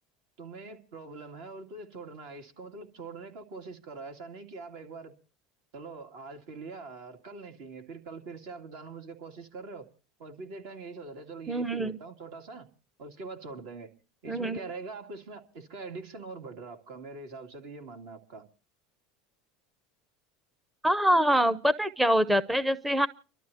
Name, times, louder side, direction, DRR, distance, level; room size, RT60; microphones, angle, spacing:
voice 1, 0.4-5.1 5.7-9.9 10.2-12.7 13.0-13.9 14.2-18.5, right 3 dB, 70° right, 2.6 m, -43 dB
voice 2, 11.5-12.0 14.3-14.6 20.8-23.1, equal, 5° right, 0.6 m, -25 dB
30.0 x 12.5 x 2.8 m
supercardioid pair, 110°, 0 cm